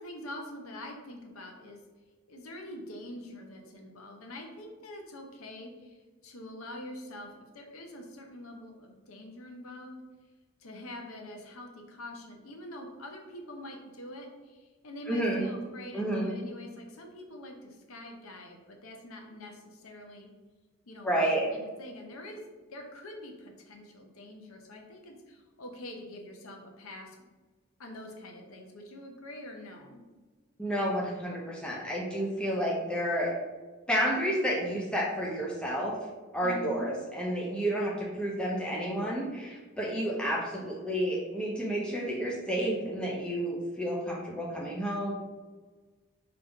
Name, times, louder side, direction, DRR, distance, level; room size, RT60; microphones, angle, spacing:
voice 1, 0.0-1.8 2.3-10.0 10.6-20.3 20.9-22.4 22.7-27.2 27.8-30.0 36.4-36.9, left 1 dB, 90° left, 2 dB, 0.8 m, -45 dB
voice 2, 15.1-15.5 15.9-16.3 21.0-21.4 30.6-33.3 33.9-36.0 36.3-45.1, equal, 5° left, -3 dB, 0.7 m, -30 dB
4.9 x 2.9 x 3.6 m, 1.3 s
head